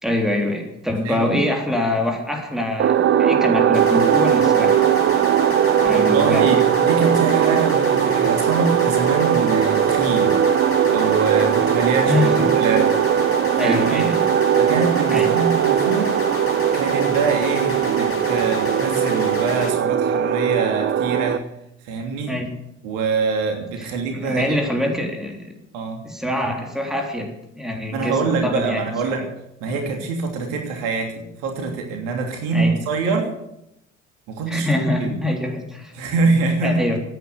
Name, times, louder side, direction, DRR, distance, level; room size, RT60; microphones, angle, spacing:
voice 1, 0.0-4.9 5.8-6.5 12.1-12.5 13.6-14.3 15.1-15.4 22.3-22.5 23.8-25.5 26.0-29.1 29.7-30.0 32.5-32.8 34.5-35.9 36.6-37.0, left 1 dB, ahead, 2 dB, 3.5 m, -24 dB
voice 2, 1.0-1.4 5.9-10.4 10.9-12.9 13.6-14.1 14.6-16.1 16.7-21.4 21.8-22.3 22.8-24.6 25.7-26.0 27.9-29.2 29.6-33.3 34.3-35.2 35.9-36.8, right 4 dB, 60° right, 3 dB, 3.1 m, -24 dB
sound 1, 2.8-21.4, right 9 dB, 35° right, 0.9 m, -19 dB
sound 2, 3.7-19.7, left 3 dB, 35° left, 4.0 m, -31 dB
16.5 x 9.4 x 8.2 m, 0.83 s
figure-of-eight pair, 55°, 36 cm